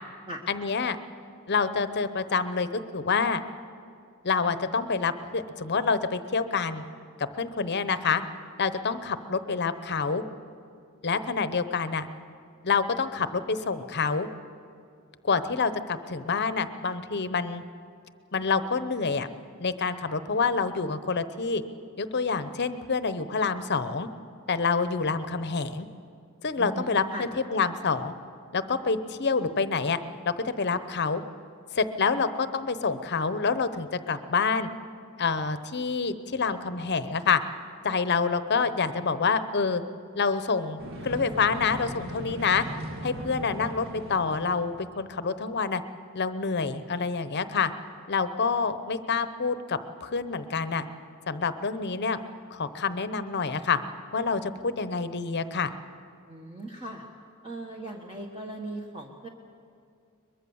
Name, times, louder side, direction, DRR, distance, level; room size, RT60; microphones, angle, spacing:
voice 1, 0.5-1.0 1.5-3.4 4.2-6.8 7.2-8.2 8.6-10.2 11.0-12.1 12.6-14.3 15.2-17.6 18.3-19.3 19.6-21.6 22.0-24.1 24.5-25.9 26.4-28.1 28.5-30.0 30.2-31.2 31.7-34.7 35.2-37.4 37.8-39.8 40.2-42.6 43.0-45.8 46.1-47.7 48.1-50.8 51.3-52.2 52.5-53.8 54.1-55.7, left 5 dB, 50° left, 12 dB, 0.8 m, -27 dB
voice 2, 26.6-27.3 56.3-57.1 57.4-59.3, right 1 dB, 25° right, -1 dB, 1.3 m, -38 dB
sound 1, 40.8-45.0, right 1 dB, 60° right, 1.7 m, -38 dB
22.5 x 22.0 x 7.1 m, 2.4 s
head